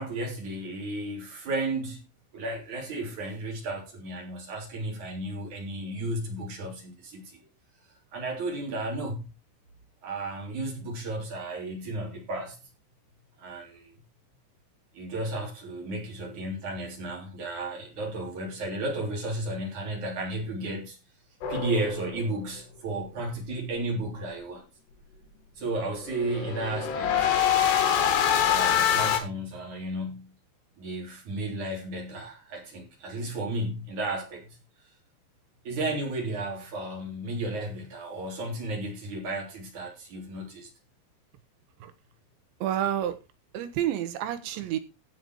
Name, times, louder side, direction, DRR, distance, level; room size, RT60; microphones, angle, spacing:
voice 1, 0.0-2.0 2.3-7.4 8.1-9.2 10.0-12.6 13.4-13.9 14.9-21.0 21.5-24.7 25.6-27.3 28.5-30.3 30.8-34.6 35.6-40.7, right 2 dB, 40° right, 4.5 m, -33 dB
sound 1, 21.4-22.3 26.1-29.2, left 9 dB, 65° left, 3.7 m, -25 dB
voice 2, 42.6-43.2 43.5-44.8, right 11 dB, 75° right, 3.4 m, -29 dB
16.0 x 6.1 x 4.7 m
omnidirectional pair, 5.4 m